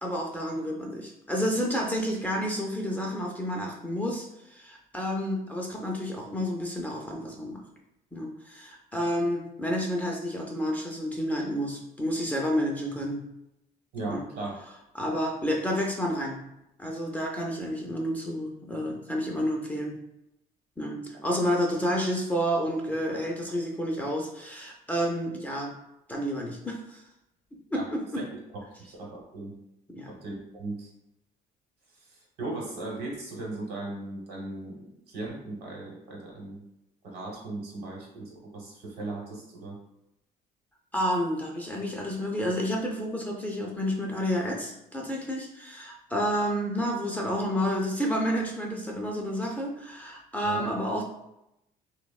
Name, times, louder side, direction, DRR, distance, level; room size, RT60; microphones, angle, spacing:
voice 1, 0.0-7.6 8.1-13.2 14.1-14.2 14.9-16.4 16.8-19.9 20.8-25.8 26.1-27.0 27.7-28.2 29.9-30.1 40.9-51.0, equal, 10° left, -1 dB, 0.3 m, -30 dB
voice 2, 13.9-14.6 27.7-27.9 28.8-29.5 30.1-30.9 32.1-36.6 37.0-39.8 50.4-50.7, right 2 dB, 70° right, -2 dB, 1.0 m, -37 dB
2.8 x 2.0 x 2.3 m, 0.86 s
cardioid pair, 110°, 17 cm